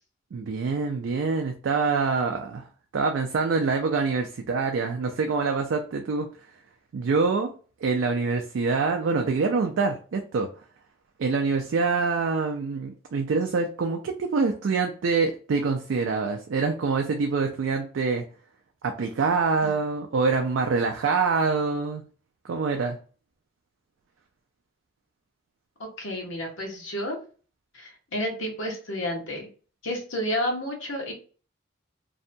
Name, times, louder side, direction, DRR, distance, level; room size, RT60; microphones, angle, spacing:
voice 1, 0.3-2.6 2.9-6.3 6.9-7.5 7.8-10.5 11.2-18.2 18.8-22.0 22.5-23.0, right 4 dB, 75° right, 4 dB, 0.3 m, -25 dB
voice 2, 19.6-19.9 25.8-27.2 27.7-29.5 29.8-31.1, left 1 dB, 80° left, 0 dB, 0.9 m, -31 dB
2.7 x 2.2 x 2.6 m, 0.38 s
head